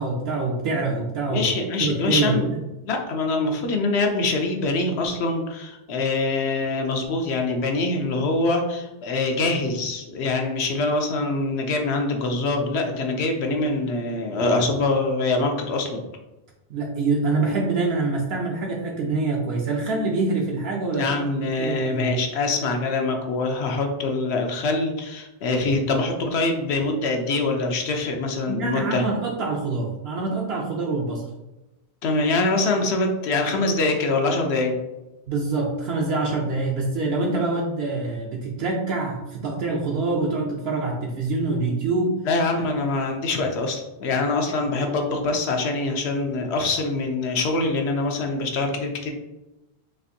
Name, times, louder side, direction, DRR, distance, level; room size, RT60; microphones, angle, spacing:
voice 1, 0.0-1.5 1.8-2.6 16.7-21.2 21.6-22.1 28.5-31.2 35.3-42.2 44.5-44.6, right 3 dB, 75° right, -1 dB, 0.8 m, -25 dB
voice 2, 1.3-2.5 2.8-16.0 20.9-29.1 32.0-34.8 42.2-49.1, left 3 dB, 80° left, 3 dB, 0.9 m, -24 dB
4.4 x 2.5 x 2.6 m, 0.99 s
omnidirectional pair, 1.1 m